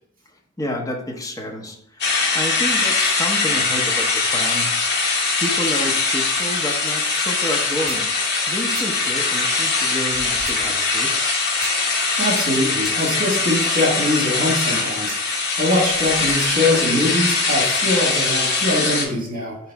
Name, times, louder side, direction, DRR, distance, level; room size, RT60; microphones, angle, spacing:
voice 1, 0.6-8.1 8.5-11.1, left 1 dB, 15° left, 0 dB, 0.7 m, -30 dB
sound 1, 2.0-19.1, left 3 dB, 55° left, 0.9 m, -21 dB
sound 2, 7.9-8.1 8.7-8.9 10.4-10.6 11.6-11.8 12.8-13.0, right 6 dB, 75° right, 0.6 m, -35 dB
voice 2, 12.2-19.6, left 1 dB, 45° right, -1 dB, 1.5 m, -22 dB
3.9 x 3.0 x 4.5 m, 0.72 s
head